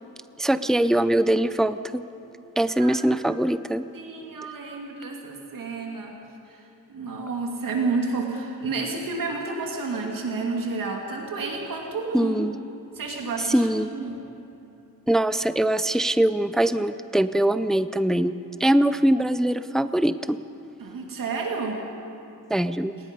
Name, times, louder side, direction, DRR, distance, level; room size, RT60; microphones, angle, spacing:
voice 1, 0.4-2.0 2.6-3.8 12.1-12.6 13.5-13.9 15.1-18.3 18.6-20.4 22.5-22.9, right 1 dB, ahead, 13 dB, 0.4 m, -22 dB
voice 2, 3.9-6.1 6.5-12.4 12.9-13.7 13.9-14.2 20.8-21.8, right 4 dB, 70° right, 0 dB, 2.7 m, -30 dB
28.5 x 19.0 x 5.4 m, 2.9 s
wide cardioid pair, 145°, 35 cm